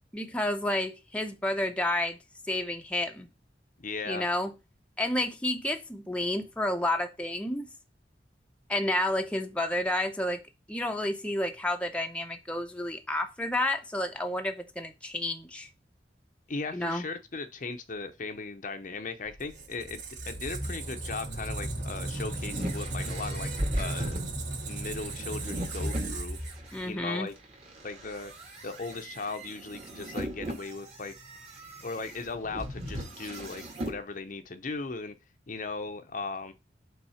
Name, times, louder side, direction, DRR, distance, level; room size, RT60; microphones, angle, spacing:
voice 1, 0.1-2.2 2.5-3.3 4.1-4.5 5.0-7.7 8.7-10.4 10.7-15.7 16.7-17.0 26.7-27.3, left 1 dB, 5° left, 0.7 m, -30 dB
voice 2, 3.8-4.3 16.5-24.3 24.6-26.4 26.8-27.3 27.8-28.3 28.6-31.1 31.8-35.1 35.5-36.5, left 3 dB, 45° left, 0.7 m, -38 dB
Squeak, 19.3-27.0, right 2 dB, 85° right, 2.5 m, -36 dB
sound 1, 21.7-26.8 27.4-34.0, right 1 dB, 35° right, 1.8 m, -38 dB
5.6 x 3.9 x 5.6 m
head